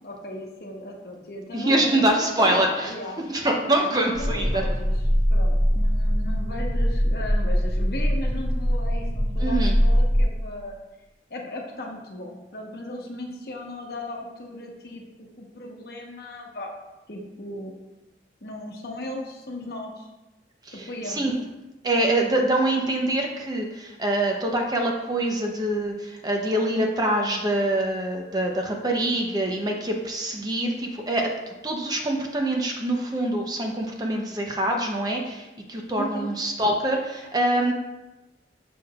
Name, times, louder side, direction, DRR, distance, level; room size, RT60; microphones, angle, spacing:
voice 1, 0.0-3.2 3.5-4.9 5.3-10.7 11.3-15.0 15.4-16.7 17.1-17.8 18.4-20.1 20.7-21.3 36.0-36.3, left 1 dB, 60° left, 0 dB, 1.0 m, -37 dB
voice 2, 1.5-4.6 9.4-9.8 20.6-21.3 21.8-37.7, right 1 dB, 20° right, 1 dB, 0.7 m, -25 dB
sound 1, 4.1-10.2, equal, 50° right, 1.7 m, -22 dB
6.7 x 6.1 x 2.4 m, 1.0 s
head